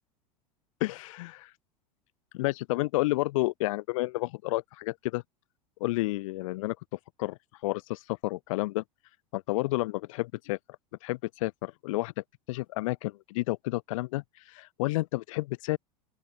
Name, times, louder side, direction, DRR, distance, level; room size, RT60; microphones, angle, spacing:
voice 1, 0.8-1.5 2.3-5.2 5.8-6.8 7.2-7.4 7.6-8.8 9.3-10.6 11.0-15.8, left 20 dB, 55° left, 0.6 m, -31 dB
open air
figure-of-eight pair, 80°, 20 cm